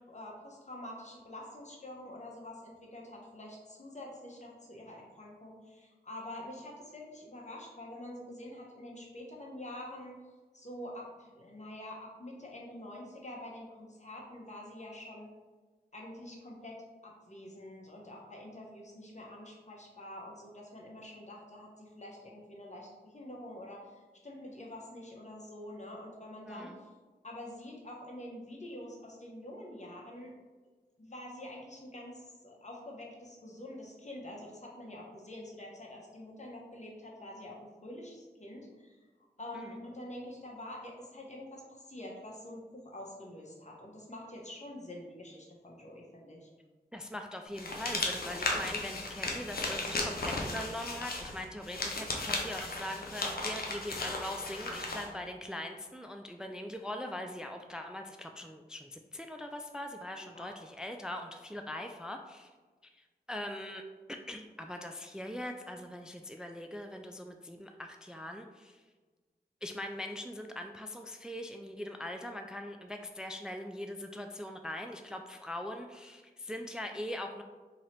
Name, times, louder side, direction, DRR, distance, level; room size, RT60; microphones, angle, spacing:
voice 1, 0.1-10.2 10.5-15.3 15.9-26.9 27.2-30.3 31.0-39.0 39.4-46.5 60.2-60.5, left 1 dB, 40° left, -2 dB, 1.1 m, -46 dB
voice 2, 26.5-26.8 39.5-39.7 46.9-62.5 63.3-63.8 64.1-68.8 69.6-77.4, left 1 dB, 5° right, 5 dB, 0.3 m, -41 dB
sound 1, 47.6-55.1, left 2 dB, 60° left, 0.7 m, -35 dB
3.0 x 2.9 x 4.3 m, 1.3 s
cardioid pair, 45°, 18 cm